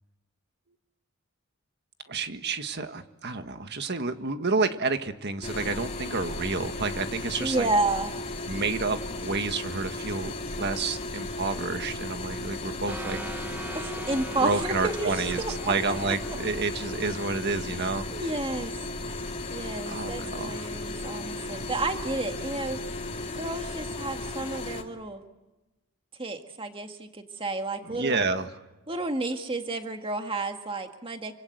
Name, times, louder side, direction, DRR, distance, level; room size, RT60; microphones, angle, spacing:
voice 1, 2.1-7.7 8.5-13.2 14.4-18.1 19.9-20.7 27.8-28.5, right 3 dB, 50° right, 8 dB, 1.7 m, -30 dB
sound 1, 5.4-24.8, left 2 dB, 30° left, 2.9 m, -35 dB
voice 2, 7.4-8.1 13.7-15.9 17.8-18.7 19.5-22.8 23.4-25.2 26.2-28.3 28.9-31.3, right 2 dB, 25° right, 5 dB, 1.8 m, -31 dB
sound 2, 12.9-18.3, right 1 dB, 10° right, 1.0 m, -41 dB
28.0 x 26.0 x 8.1 m, 1.0 s
head